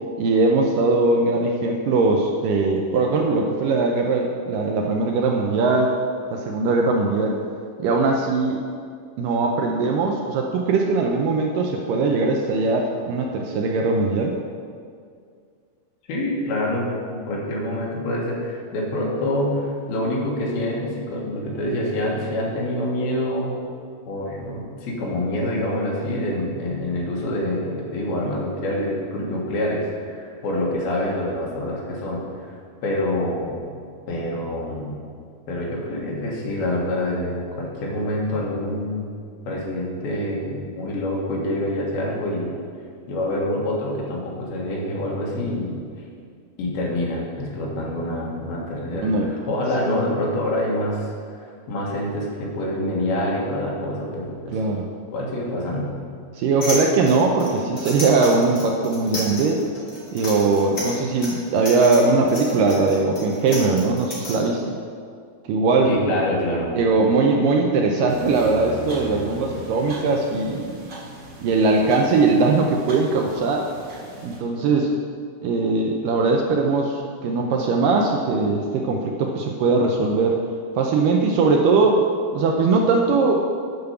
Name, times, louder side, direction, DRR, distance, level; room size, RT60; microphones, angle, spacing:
voice 1, 0.2-5.9 6.3-7.4 7.8-8.6 9.2-14.3 48.9-49.3 54.5-54.9 56.3-59.6 60.1-64.8 65.5-65.9 66.8-70.8 71.4-73.6 74.2-74.9 75.4-80.4 80.8-82.0 82.3-83.5, right 3 dB, 80° right, 1 dB, 2.0 m, -20 dB
voice 2, 16.1-23.5 24.1-32.5 32.8-33.6 34.1-35.0 35.5-39.1 39.5-42.5 43.1-45.8 46.6-51.1 51.4-54.6 55.1-55.9 65.9-66.7, left 1 dB, 75° left, -3 dB, 3.4 m, -26 dB
sound 1, 56.6-64.3, left 1 dB, 30° left, 2.2 m, -33 dB
sound 2, 68.1-74.4, right 1 dB, 25° right, 2.8 m, -39 dB
9.5 x 5.2 x 6.8 m, 2.2 s
omnidirectional pair, 4.4 m